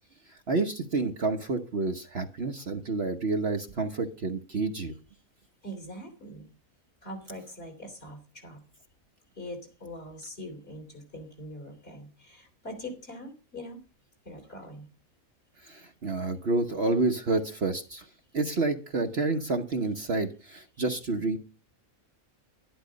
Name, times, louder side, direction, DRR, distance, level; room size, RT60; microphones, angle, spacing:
voice 1, 0.5-4.9 15.6-18.0 18.3-21.4, right 3 dB, 50° right, 5 dB, 1.2 m, -29 dB
voice 2, 5.6-6.5 7.0-8.6 9.4-13.8 14.3-14.9, equal, 45° left, 3 dB, 3.7 m, -42 dB
11.5 x 11.5 x 5.1 m, 0.34 s
omnidirectional pair, 1.5 m